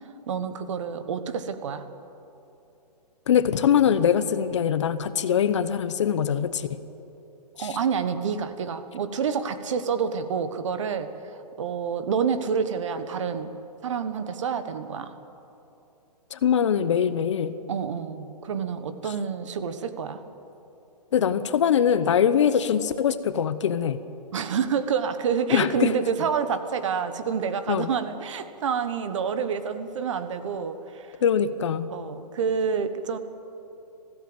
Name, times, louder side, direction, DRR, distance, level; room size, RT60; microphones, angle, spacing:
voice 1, 0.3-1.9 7.6-11.1 11.6-13.5 13.8-15.2 17.7-20.2 24.3-31.1 31.9-33.2, right 6 dB, 45° right, 10 dB, 1.4 m, -28 dB
voice 2, 3.3-6.8 7.6-7.8 16.3-17.6 19.1-19.2 21.1-24.0 25.5-25.9 27.7-27.9 31.2-31.9, left 8 dB, 45° left, 13 dB, 0.9 m, -23 dB
19.5 x 16.0 x 9.0 m, 2.8 s
hypercardioid pair, 165°, 21 cm